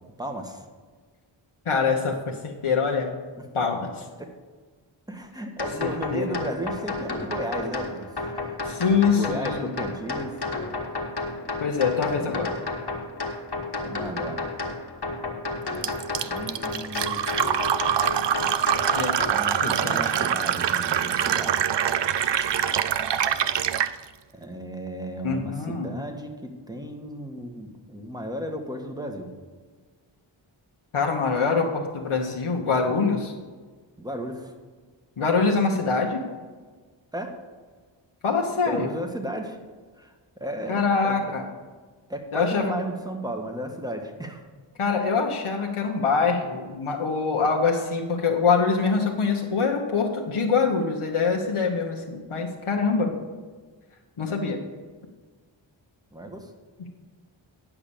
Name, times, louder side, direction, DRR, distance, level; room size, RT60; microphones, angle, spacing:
voice 1, 0.2-0.6 3.3-3.4 4.2-4.3 5.1-8.6 9.1-10.4 12.1-12.5 13.8-14.5 16.2-17.2 19.3-21.8 24.3-29.3 34.0-34.5 37.1-37.3 38.7-39.6 40.0-41.2 42.1-44.5 56.1-56.5, right 1 dB, 10° right, 4 dB, 1.5 m, -34 dB
voice 2, 1.7-3.1 3.5-4.0 5.8-6.4 8.6-9.7 11.6-12.5 18.9-19.2 19.6-20.1 25.2-25.9 30.9-33.3 35.2-36.2 38.2-38.9 40.7-41.5 42.3-42.7 44.8-53.2 54.2-54.6, left 5 dB, 80° left, 0 dB, 1.1 m, -24 dB
sound 1, 5.6-19.3, left 3 dB, 50° left, 1.5 m, -32 dB
Fill (with liquid), 15.8-23.9, right 9 dB, 60° right, 0.5 m, -24 dB
10.0 x 5.9 x 7.0 m, 1.5 s
cardioid pair, 45°, 49 cm